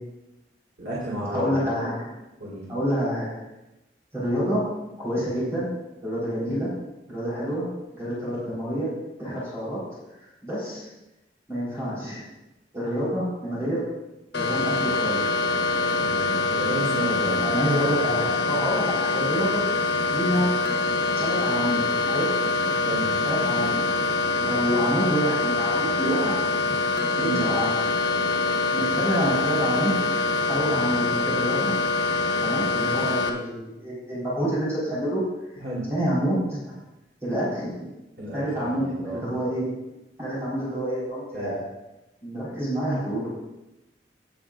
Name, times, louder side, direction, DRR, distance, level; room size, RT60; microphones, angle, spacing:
voice 1, 0.8-1.5 2.4-2.7 16.0-17.6 22.8-23.1 27.2-27.4 35.6-35.9 38.2-39.3 41.3-41.6, right 1 dB, 75° right, -7 dB, 3.5 m, -32 dB
voice 2, 1.3-2.1 2.7-3.3 4.1-4.6 5.0-5.7 6.0-6.7 7.1-7.7 7.9-8.9 9.2-9.8 10.4-10.8 11.5-12.2 12.7-13.8 14.3-15.3 17.4-19.6 20.1-20.5 21.2-21.8 22.1-22.3 23.2-23.9 24.4-26.4 27.2-27.7 28.7-30.0 30.3-31.8 32.4-35.2 35.9-36.8 37.2-37.9 38.3-39.7 40.2-41.7 42.2-43.3, equal, 15° right, -9 dB, 4.3 m, -27 dB
sound 1, 14.3-33.3, left 3 dB, 85° left, 1.3 m, -24 dB
18.5 x 8.7 x 2.6 m, 0.97 s
head